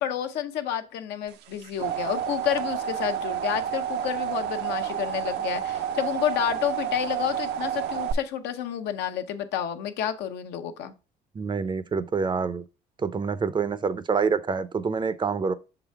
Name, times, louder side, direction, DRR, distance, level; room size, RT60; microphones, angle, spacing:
voice 1, 0.0-10.9, left 10 dB, 80° left, 0.8 m, -30 dB
sound 1, 1.4-8.1, right 9 dB, 80° right, 0.6 m, -30 dB
voice 2, 11.3-12.6 13.0-15.5, right 5 dB, 25° right, 0.5 m, -26 dB
6.5 x 3.9 x 4.5 m
cardioid pair, 110°, 17 cm